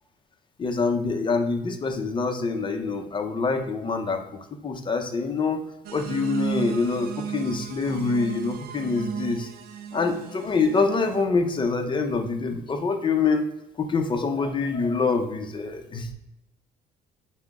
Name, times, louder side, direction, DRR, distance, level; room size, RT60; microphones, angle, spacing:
voice 1, 0.6-5.6 5.9-9.5 9.9-13.4 13.8-16.1, left 4 dB, 30° left, 5 dB, 0.6 m, -25 dB
sound 1, 5.8-11.2, right 7 dB, 65° right, 0.5 m, -34 dB
5.7 x 2.1 x 3.6 m, 0.85 s
cardioid pair, 110°, 17 cm